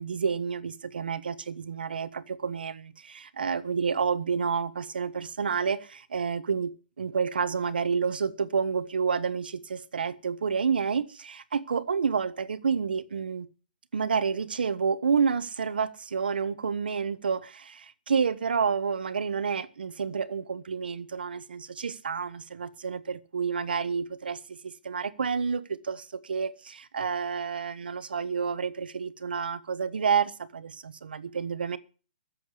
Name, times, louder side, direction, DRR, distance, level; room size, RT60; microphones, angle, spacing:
voice 1, 0.0-13.5 13.9-31.8, right 6 dB, 90° right, 1.2 m, -29 dB
14.0 x 7.8 x 8.2 m
hypercardioid pair, 165°, 5 cm